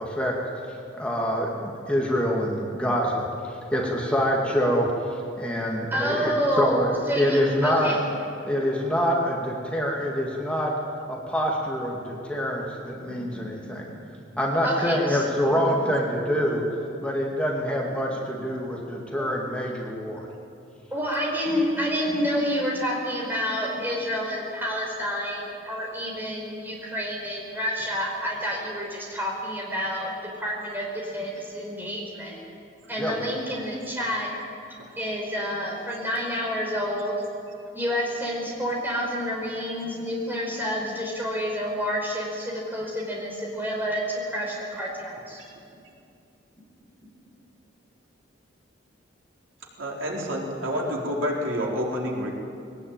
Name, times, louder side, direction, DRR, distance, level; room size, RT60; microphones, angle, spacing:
voice 1, 0.0-7.9 8.5-10.7 11.1-13.8 14.4-16.6 17.0-20.3 33.0-33.3, equal, 5° left, -2 dB, 2.3 m, -26 dB
voice 2, 5.9-8.0 13.0-13.1 14.0-14.1 14.6-15.2 19.1-19.3 20.9-32.4 32.9-34.3 35.0-37.1 37.7-45.4, equal, 10° right, -2 dB, 4.8 m, -29 dB
voice 3, 49.8-52.3, equal, 90° right, -2 dB, 4.2 m, -28 dB
20.5 x 18.5 x 9.0 m, 2.6 s
head